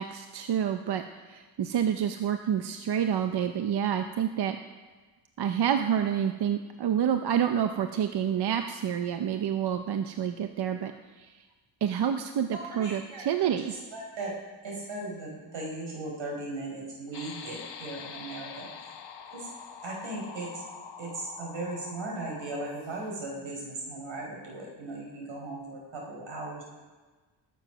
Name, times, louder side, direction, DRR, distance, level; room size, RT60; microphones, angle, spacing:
voice 1, 0.0-4.6 5.4-10.9 11.2-11.3 11.8-13.8, right 9 dB, 60° right, 7 dB, 0.7 m, -28 dB
voice 2, 12.5-14.3 14.6-18.7 19.3-19.5 19.8-20.5 21.0-26.6, right 2 dB, 90° right, -2 dB, 4.6 m, -37 dB
sound 1, 17.1-23.3, left 7 dB, 60° left, 1.1 m, -45 dB
20.5 x 7.1 x 6.1 m, 1.3 s
wide cardioid pair, 165°, 45 cm